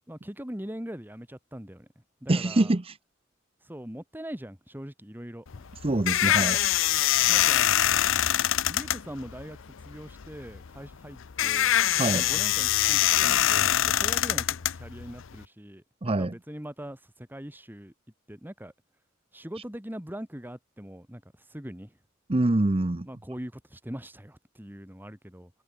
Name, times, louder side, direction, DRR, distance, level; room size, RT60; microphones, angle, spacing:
voice 1, 0.1-1.9 2.2-2.7 3.6-5.7 7.3-7.7 8.7-11.7 12.2-17.9 18.3-18.7 19.3-21.9 23.0-25.5, equal, 10° right, 2.7 m, -41 dB
voice 2, 2.3-2.9 5.8-6.6 12.0-12.3 16.0-16.3 22.3-23.1, right 2 dB, 30° right, 0.8 m, -25 dB
sound 1, 5.5-15.4, left 12 dB, 65° left, 0.6 m, -24 dB
head